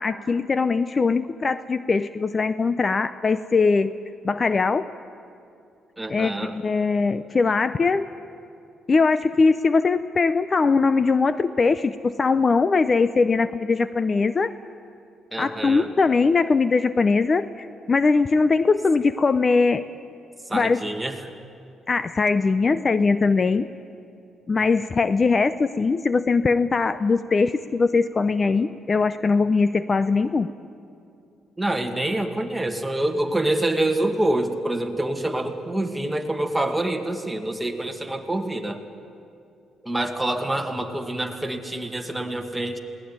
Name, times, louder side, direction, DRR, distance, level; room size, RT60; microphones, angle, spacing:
voice 1, 0.0-3.9 4.2-4.8 6.1-8.1 8.9-14.5 15.4-19.8 20.5-20.8 21.9-23.7 24.5-30.5, left 4 dB, 35° left, 13 dB, 0.6 m, -21 dB
voice 2, 6.0-6.6 15.3-15.9 20.5-21.3 31.6-38.8 39.8-42.8, right 1 dB, 10° right, 4 dB, 2.1 m, -26 dB
21.5 x 18.0 x 9.5 m, 2.6 s
cardioid pair, 90°, 0 cm